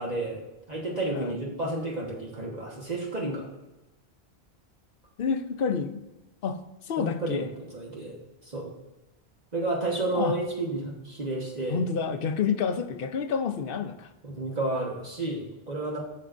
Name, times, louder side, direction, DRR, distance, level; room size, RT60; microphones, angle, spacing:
voice 1, 0.0-3.5 7.0-8.7 9.5-11.8 14.2-16.0, right 2 dB, 40° right, -3 dB, 1.4 m, -31 dB
voice 2, 5.2-6.0 6.4-6.6 6.9-7.5 10.1-10.4 11.7-14.1, left 6 dB, 65° left, 9 dB, 0.8 m, -28 dB
14.5 x 6.7 x 2.5 m, 1.0 s
omnidirectional pair, 1.1 m